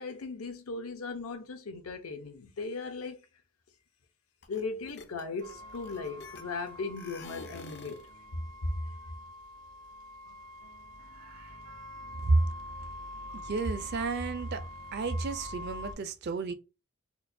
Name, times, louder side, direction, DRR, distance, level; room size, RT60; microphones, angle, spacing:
voice 1, 0.0-3.2 4.5-8.0, left 4 dB, 80° left, 0.7 m, -38 dB
sound 1, 4.4-4.6 4.9-6.7 7.0-8.1, left 4 dB, 50° left, 0.5 m, -47 dB
sound 2, 5.4-15.9, left 1 dB, 75° right, 0.8 m, -45 dB
voice 2, 13.3-14.6 14.9-16.5, right 3 dB, 50° right, 0.4 m, -30 dB
4.4 x 2.2 x 2.6 m
head